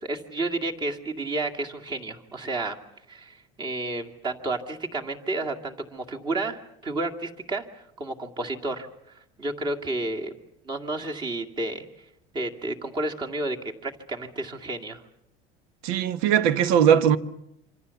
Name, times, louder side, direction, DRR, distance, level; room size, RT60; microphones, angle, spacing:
voice 1, 0.0-2.8 3.1-7.7 8.0-8.9 9.4-10.3 10.7-11.8 12.3-15.0, right 2 dB, 25° right, 2.3 m, -31 dB
voice 2, 15.8-17.2, right 9 dB, 80° right, 1.3 m, -19 dB
26.5 x 26.0 x 7.1 m
cardioid pair, 145°, 17 cm